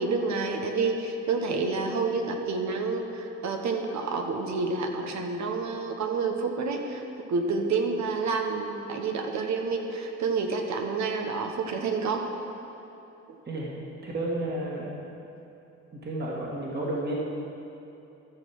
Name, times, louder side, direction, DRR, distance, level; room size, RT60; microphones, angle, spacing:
voice 1, 0.0-7.0 7.3-12.2, right 4 dB, 65° right, 4 dB, 1.3 m, -29 dB
voice 2, 14.0-14.9 16.0-17.1, right 1 dB, 35° right, -4 dB, 2.0 m, -31 dB
13.5 x 6.5 x 6.1 m, 2.9 s
cardioid pair, 90°, 30 cm